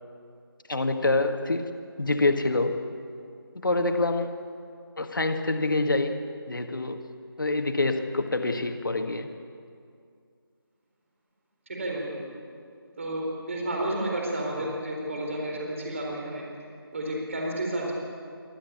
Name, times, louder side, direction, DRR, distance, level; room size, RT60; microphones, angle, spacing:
voice 1, 0.7-1.7 2.0-2.8 3.5-4.5 5.0-6.2 6.5-7.1 7.4-9.3, left 2 dB, 55° left, 6 dB, 1.8 m, -26 dB
voice 2, 11.7-12.3 13.0-16.4 16.9-17.9, right 1 dB, 35° right, -1 dB, 4.2 m, -31 dB
27.5 x 12.5 x 8.5 m, 2.4 s
figure-of-eight pair, 165°, 13 cm